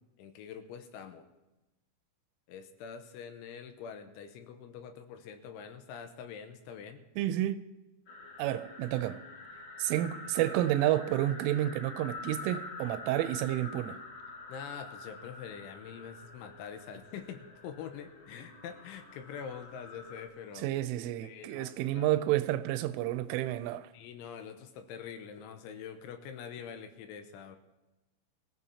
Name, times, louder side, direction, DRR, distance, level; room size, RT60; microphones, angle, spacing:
voice 1, 0.2-1.3 2.5-7.0 14.5-20.7 21.2-22.2 23.9-27.6, left 7 dB, 80° left, 3.2 m, -45 dB
voice 2, 7.2-7.7 8.4-9.2 9.8-14.0 20.6-23.9, right 13 dB, 85° right, 3.1 m, -30 dB
sound 1, 8.1-20.3, left 3 dB, 50° left, 2.8 m, -47 dB
24.0 x 15.5 x 2.8 m
omnidirectional pair, 5.6 m